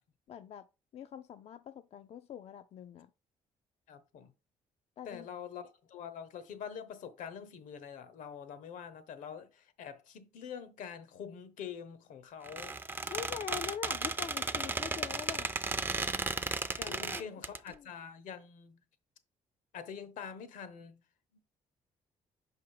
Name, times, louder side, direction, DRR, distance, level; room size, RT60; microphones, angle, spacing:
voice 1, 0.3-0.7 0.9-3.1 5.0-5.3 13.0-15.8 16.9-17.4 17.7-17.9, left 8 dB, 50° left, 0.4 m, -44 dB
voice 2, 3.9-4.3 5.1-12.8 16.8-18.8 19.7-21.0 21.3-21.4, left 7 dB, 80° left, 0.9 m, -45 dB
Squeak, 12.4-17.6, right 3 dB, 15° right, 0.4 m, -35 dB
5.6 x 4.9 x 4.7 m
cardioid pair, 110°, 13 cm